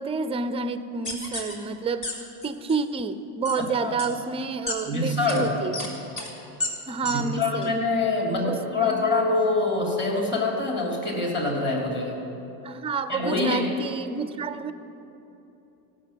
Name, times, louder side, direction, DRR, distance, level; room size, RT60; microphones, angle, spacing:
voice 1, 0.0-5.9 6.9-7.7 8.4-9.0 12.6-14.7, right 4 dB, 15° right, 12 dB, 0.4 m, -29 dB
sound 1, 1.0-1.5 2.0-2.1 2.4-2.8 3.4-3.6 4.0-4.1 4.7-4.8 5.3-5.4 5.7-5.9 6.2-6.3 6.6-6.7 7.0-7.1 7.6-7.7, left 2 dB, 35° left, 3.4 m, -31 dB
voice 2, 4.8-5.5 7.0-12.2 13.1-13.7, left 3 dB, 20° left, -1 dB, 3.2 m, -25 dB
16.0 x 6.5 x 7.6 m, 3.0 s
supercardioid pair, 95°, 49 cm